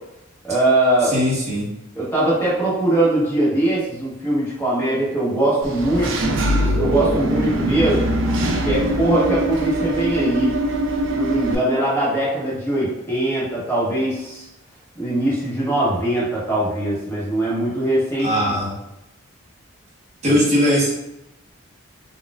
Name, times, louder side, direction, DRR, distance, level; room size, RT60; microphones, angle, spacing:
voice 1, 0.4-1.1 1.9-8.1 8.6-10.5 11.1-14.4 14.9-18.5 20.2-20.4, right 1 dB, 10° left, -8 dB, 1.1 m, -21 dB
voice 2, 1.0-1.7 18.2-18.8 20.2-20.9, equal, 30° right, -6 dB, 1.0 m, -19 dB
Engine / Mechanisms, 5.6-11.5, right 1 dB, 60° right, 0.4 m, -22 dB
4.1 x 2.3 x 2.3 m, 0.88 s
head